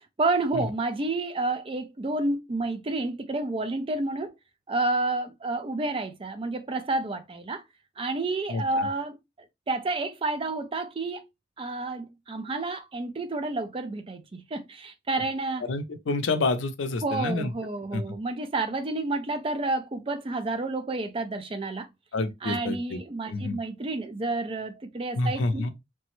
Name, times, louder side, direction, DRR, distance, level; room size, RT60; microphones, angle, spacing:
voice 1, 0.2-4.3 4.7-7.6 8.0-9.2 9.7-11.3 11.6-15.7 17.0-21.9 22.4-25.7, right 2 dB, 30° right, 0.4 m, -30 dB
voice 2, 15.6-17.5 17.9-18.0 22.1-23.0 23.3-23.6 25.2-25.7, left 3 dB, 85° left, 0.5 m, -28 dB
3.3 x 2.0 x 3.0 m
head